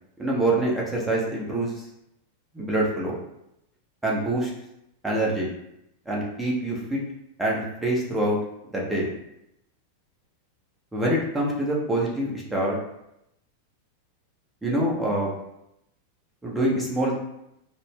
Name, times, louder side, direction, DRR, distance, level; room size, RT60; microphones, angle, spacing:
voice 1, 0.2-1.8 2.5-3.2 4.0-4.5 5.0-5.5 6.1-7.0 7.4-8.4 8.7-9.1 10.9-12.8 14.6-15.3 16.4-17.1, right 1 dB, 10° right, -4 dB, 1.0 m, -25 dB
4.0 x 2.2 x 3.4 m, 0.81 s
figure-of-eight pair, 90°, 0 cm